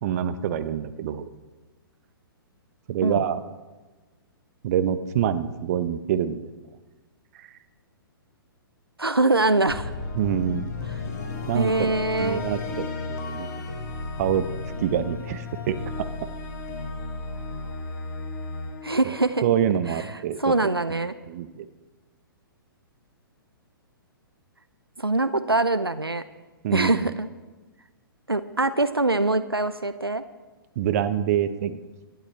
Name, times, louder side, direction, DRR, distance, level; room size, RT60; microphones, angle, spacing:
voice 1, 0.0-1.2 2.9-3.4 4.6-6.5 7.4-7.5 10.1-10.7 11.5-11.9 12.2-12.6 13.1-13.5 14.2-14.4 14.8-15.8 19.0-19.2 19.4-20.5 20.9-21.0 21.3-21.6 26.6-27.1 30.8-31.8, right 10 dB, 40° right, 11 dB, 0.9 m, -25 dB
voice 2, 9.0-9.9 11.5-12.4 18.8-19.4 20.4-21.1 25.0-26.2 26.7-27.3 28.3-30.2, right 2 dB, 90° right, 12 dB, 0.7 m, -23 dB
sound 1, 9.7-19.9, left 3 dB, 50° left, 2.8 m, -34 dB
24.5 x 11.5 x 3.3 m, 1.2 s
figure-of-eight pair, 115°, 12 cm